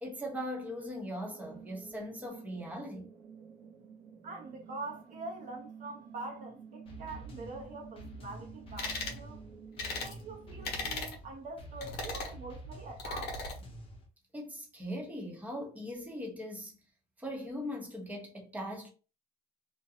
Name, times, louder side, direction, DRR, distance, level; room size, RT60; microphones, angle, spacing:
voice 1, 0.0-3.1 14.3-16.8 17.2-18.9, equal, 10° right, 0.9 m, -40 dB
sound 1, 1.2-10.9, right 7 dB, 80° right, 1.0 m, -51 dB
voice 2, 4.2-9.4 9.9-13.4, right 2 dB, 50° right, 0.7 m, -44 dB
sound 2, 6.9-14.1, right 1 dB, 35° left, 0.8 m, -48 dB
sound 3, 8.8-9.2 9.8-10.1 10.6-11.2 11.8-12.3 13.0-13.6, left 3 dB, 75° left, 0.9 m, -37 dB
2.5 x 2.2 x 2.7 m
cardioid pair, 110°, 17 cm